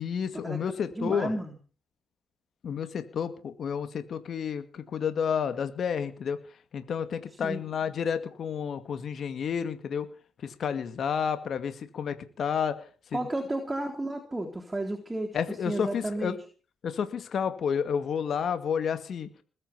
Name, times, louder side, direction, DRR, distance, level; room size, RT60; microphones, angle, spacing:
voice 1, 0.0-1.3 2.6-6.4 6.7-10.1 10.4-12.8 13.1-13.2 15.3-16.3 16.8-19.3, left 7 dB, 55° left, 10 dB, 2.2 m, -30 dB
voice 2, 1.0-1.5 7.4-7.6 13.1-15.4 15.7-16.4, right 1 dB, 15° right, 2 dB, 3.6 m, -32 dB
20.5 x 8.8 x 7.1 m, 0.39 s
cardioid pair, 90°, 0 cm